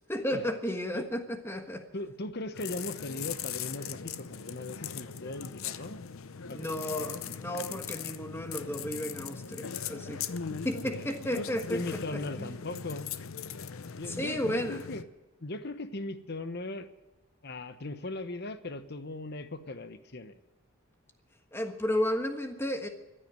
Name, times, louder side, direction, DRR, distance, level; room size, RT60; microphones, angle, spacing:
voice 1, 0.1-1.8 6.5-12.5 14.1-14.9 21.5-22.9, equal, 10° left, 6 dB, 1.3 m, -33 dB
voice 2, 1.9-6.0 6.5-7.2 10.8-13.1 14.0-15.0 15.4-16.9 17.4-20.4, left 2 dB, 50° left, 12 dB, 0.9 m, -39 dB
sound 1, 2.5-15.0, left 7 dB, 70° left, 0.7 m, -40 dB
15.0 x 10.0 x 9.0 m, 1.1 s
head